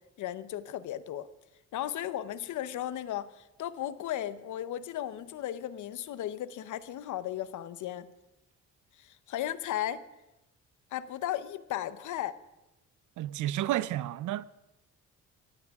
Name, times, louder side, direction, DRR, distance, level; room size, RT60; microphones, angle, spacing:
voice 1, 0.2-1.3 1.7-8.1 9.0-10.0 10.9-12.4, left 12 dB, 75° left, 0.8 m, -35 dB
voice 2, 13.2-14.4, right 13 dB, 80° right, 0.6 m, -31 dB
21.5 x 15.5 x 3.6 m
cardioid pair, 90°, 30 cm